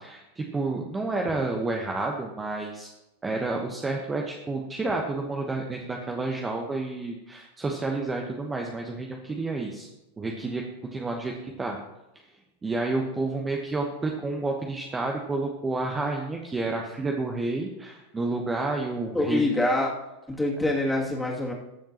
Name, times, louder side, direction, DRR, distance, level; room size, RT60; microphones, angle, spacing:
voice 1, 0.0-2.9 3.2-9.9 10.2-10.6 10.9-11.8 12.6-19.5, right 3 dB, 15° right, 1 dB, 1.2 m, -30 dB
voice 2, 19.1-19.9 20.3-21.5, left 1 dB, 5° left, -3 dB, 2.6 m, -25 dB
21.5 x 7.2 x 3.0 m, 0.97 s
figure-of-eight pair, 90°, 0 cm